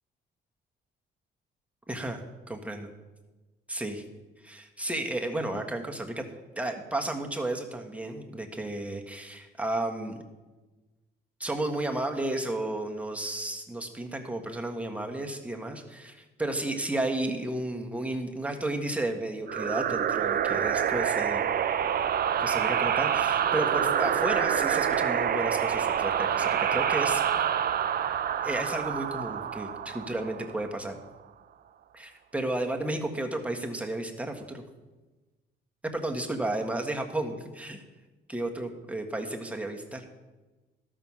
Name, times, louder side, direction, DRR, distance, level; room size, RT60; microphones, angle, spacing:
voice 1, 1.9-2.9 3.7-4.0 4.4-6.2 6.6-10.1 11.4-21.5 22.4-27.2 28.4-31.0 31.9-34.6 35.9-37.8 38.3-40.0, right 1 dB, 5° right, 2 dB, 1.5 m, -33 dB
sound 1, 19.5-30.8, right 9 dB, 50° right, 0.6 m, -27 dB
12.5 x 6.3 x 7.2 m, 1.2 s
cardioid pair, 90°, 20 cm